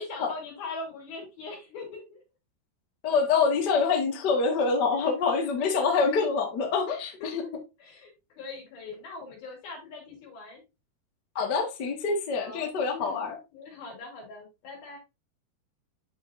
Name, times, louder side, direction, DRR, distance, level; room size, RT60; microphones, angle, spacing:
voice 1, 0.0-2.2 4.9-5.1 5.4-5.9 7.2-7.5 7.8-10.6 12.4-15.0, left 3 dB, 65° left, 5.4 m, -42 dB
voice 2, 3.0-7.5 11.3-13.4, left 4 dB, 50° left, 1.3 m, -26 dB
12.0 x 4.8 x 2.6 m
omnidirectional pair, 4.6 m